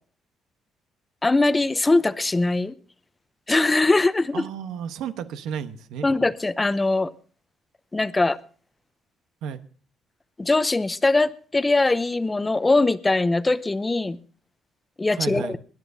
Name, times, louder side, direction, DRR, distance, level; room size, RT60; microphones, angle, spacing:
voice 1, 1.2-2.7 3.5-4.5 6.0-7.1 7.9-8.4 10.4-14.2 15.0-15.6, left 2 dB, 15° left, 0.7 m, -21 dB
voice 2, 4.3-6.1 9.4-9.6 15.1-15.6, right 8 dB, 80° right, 1.0 m, -32 dB
24.5 x 10.5 x 2.7 m
cardioid pair, 100°, 0 cm